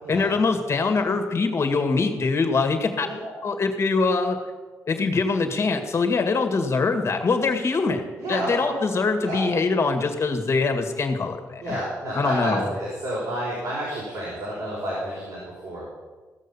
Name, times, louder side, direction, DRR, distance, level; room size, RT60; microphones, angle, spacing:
voice 1, 0.1-3.1 3.4-4.4 4.9-8.0 8.3-11.8 12.1-12.7, left 4 dB, 45° left, 6 dB, 2.1 m, -23 dB
voice 2, 3.0-3.3 8.2-8.7 9.2-9.4 11.6-15.9, right 1 dB, 70° right, -8 dB, 5.2 m, -30 dB
16.0 x 6.6 x 7.1 m, 1.3 s
supercardioid pair, 60°, 6 cm